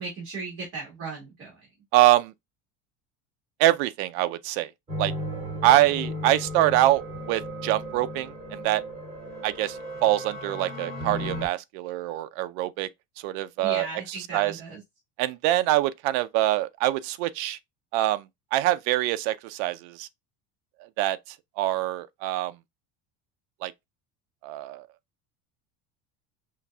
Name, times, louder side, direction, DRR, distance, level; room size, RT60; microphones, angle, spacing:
voice 1, 0.0-1.6 13.6-14.8, right 4 dB, 35° right, 1.9 m, -36 dB
voice 2, 1.9-2.3 3.6-4.7 5.0-5.1 5.6-8.8 9.4-12.9 13.2-14.6 15.2-17.6 17.9-18.3 18.5-20.1 21.0-22.5 23.6-23.7 24.4-24.9, right 15 dB, 65° right, 0.5 m, -24 dB
sound 1, 4.9-11.5, equal, 20° right, 2.3 m, -35 dB
5.6 x 2.5 x 2.2 m
cardioid pair, 175°, 35 cm